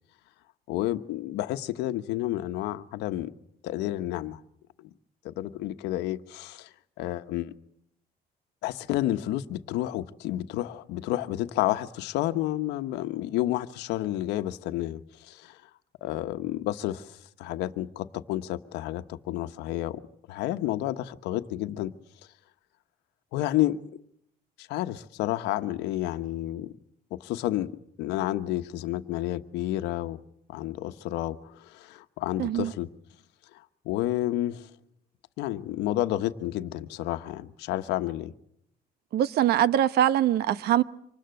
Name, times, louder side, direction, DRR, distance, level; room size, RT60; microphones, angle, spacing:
voice 1, 0.7-3.3 3.6-4.4 5.2-6.7 7.0-7.5 8.6-15.6 16.0-20.0 20.3-21.9 23.3-23.8 24.6-26.7 27.1-27.7 28.0-30.2 30.5-32.9 33.8-34.7 35.4-38.3, left 14 dB, 90° left, 1.2 m, -30 dB
voice 2, 32.4-32.7 39.1-40.8, right 11 dB, 70° right, 1.0 m, -23 dB
26.0 x 20.0 x 7.8 m
cardioid pair, 110°, 17 cm